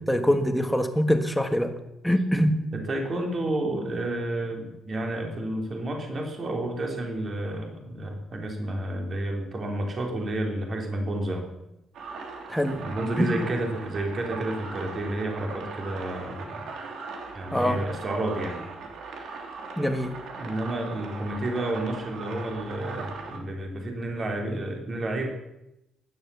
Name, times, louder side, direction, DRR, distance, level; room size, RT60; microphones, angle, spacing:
voice 1, 0.1-1.7 2.0-2.6 12.5-12.8 13.2-13.5 17.5-17.8 19.8-20.2, equal, 5° left, 6 dB, 1.6 m, -24 dB
voice 2, 2.7-11.5 12.8-16.7 17.3-18.6 19.2-19.3 20.4-25.3, right 1 dB, 35° right, 2 dB, 3.4 m, -30 dB
sound 1, 11.9-23.4, right 4 dB, 75° right, 3.0 m, -39 dB
15.5 x 11.5 x 7.0 m, 0.89 s
cardioid pair, 140°, 0 cm